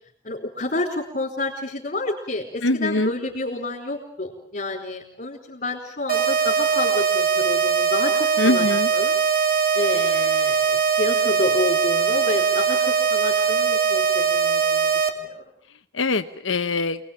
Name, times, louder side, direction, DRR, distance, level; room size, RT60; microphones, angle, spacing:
voice 1, 0.2-8.7 8.9-9.1 9.7-15.4, left 2 dB, 45° left, -3 dB, 5.0 m, -29 dB
voice 2, 2.6-3.1 8.4-8.9 16.0-17.0, left 2 dB, 85° left, 7 dB, 1.2 m, -22 dB
sound 1, 6.1-15.1, right 6 dB, 50° right, 2.9 m, -21 dB
28.5 x 20.5 x 9.0 m, 0.62 s
head